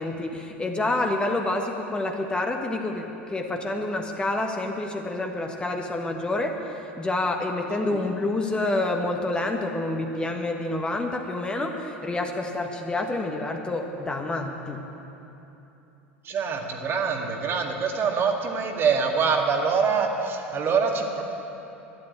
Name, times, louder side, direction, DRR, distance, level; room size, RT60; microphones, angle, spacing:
voice 1, 0.0-14.8, left 2 dB, 15° left, 3 dB, 1.4 m, -28 dB
voice 2, 16.2-21.2, right 5 dB, 35° right, 2 dB, 2.0 m, -25 dB
12.5 x 11.0 x 9.8 m, 3.0 s
figure-of-eight pair, 75°, 7 cm